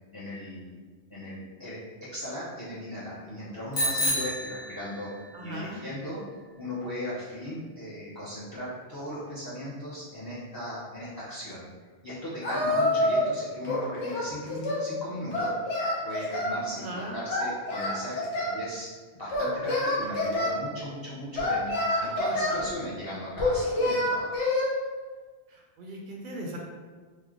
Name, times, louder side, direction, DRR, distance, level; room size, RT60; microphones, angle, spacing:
voice 1, 0.1-0.8 1.1-1.8 2.1-5.1 5.4-6.2 6.6-11.7 12.0-15.5 16.0-18.9 19.1-21.7 22.0-24.4, left 1 dB, 30° left, -8 dB, 0.5 m, -37 dB
Bicycle bell, 3.7-5.3, equal, 50° left, 1.0 m, -29 dB
voice 2, 5.3-5.8 16.7-17.2 25.5-26.6, right 1 dB, 60° right, -1 dB, 0.6 m, -38 dB
Singing, 12.4-13.3 13.6-14.9 15.3-16.6 17.3-18.6 19.3-20.5 21.4-22.6 23.4-24.7, left 1 dB, 85° left, 1.1 m, -27 dB
3.1 x 2.1 x 3.6 m, 1.4 s
omnidirectional pair, 1.1 m